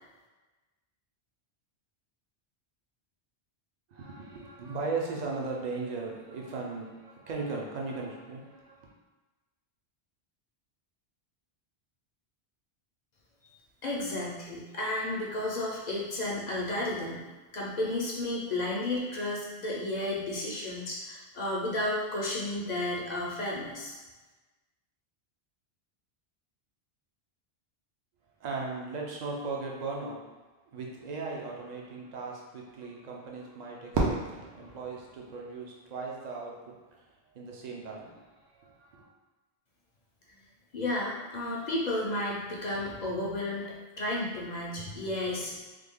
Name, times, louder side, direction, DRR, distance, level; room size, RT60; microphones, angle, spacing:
voice 1, 3.9-8.9 28.4-30.2 30.7-39.1, right 3 dB, 50° right, -1 dB, 0.6 m, -38 dB
voice 2, 13.8-17.2 17.5-23.9 40.7-45.7, left 1 dB, 50° left, -4 dB, 0.6 m, -32 dB
Fireworks, 33.9-36.1, right 3 dB, 85° right, 0.9 m, -33 dB
3.3 x 2.2 x 3.5 m, 1.2 s
omnidirectional pair, 1.1 m